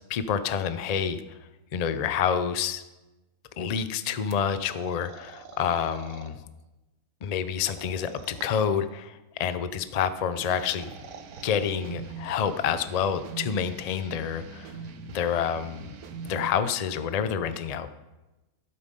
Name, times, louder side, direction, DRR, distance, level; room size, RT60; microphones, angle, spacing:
voice 1, 0.1-1.4 1.7-2.8 3.6-6.4 7.2-10.9 11.4-14.7 15.1-16.0 16.2-17.9, left 7 dB, 55° left, 12 dB, 0.4 m, -28 dB
sound 1, 4.3-6.3 7.6-8.8 10.2-11.7, right 5 dB, 60° right, 1.3 m, -46 dB
sound 2, 10.4-16.5, right 5 dB, 90° right, 1.4 m, -42 dB
12.0 x 8.6 x 5.4 m, 1.1 s
omnidirectional pair, 1.5 m